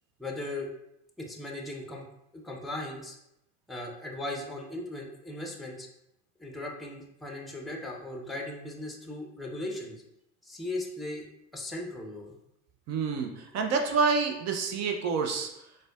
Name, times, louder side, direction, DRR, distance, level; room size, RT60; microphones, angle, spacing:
voice 1, 0.2-0.7 1.2-2.0 2.3-3.2 3.7-5.9 6.4-10.0 10.4-11.3 11.5-12.3, left 2 dB, ahead, 0 dB, 0.6 m, -38 dB
voice 2, 12.9-15.7, right 5 dB, 45° right, 3 dB, 0.5 m, -28 dB
4.1 x 2.2 x 2.3 m, 0.81 s
hypercardioid pair, 70°, 36 cm